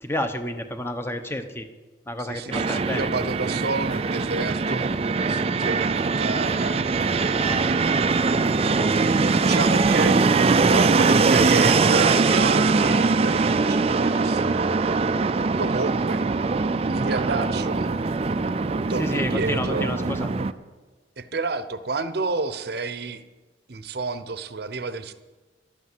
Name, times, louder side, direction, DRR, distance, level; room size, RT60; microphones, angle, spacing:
voice 1, 0.0-1.7 2.1-3.1 19.0-20.3, left 1 dB, 15° left, 8 dB, 0.8 m, -30 dB
voice 2, 2.2-7.4 8.1-8.3 9.3-10.2 10.7-14.6 15.6-16.5 16.8-18.6 18.9-19.9 21.2-23.2 23.7-25.1, right 3 dB, 55° right, 11 dB, 0.7 m, -30 dB
Fixed-wing aircraft airplane, 2.5-20.5, right 4 dB, 35° right, 0.4 m, -22 dB
Speech, 7.1-9.1 9.4-10.2 11.7-12.3, right 1 dB, 5° right, 1.0 m, -39 dB
12.0 x 8.5 x 7.6 m, 1.3 s
head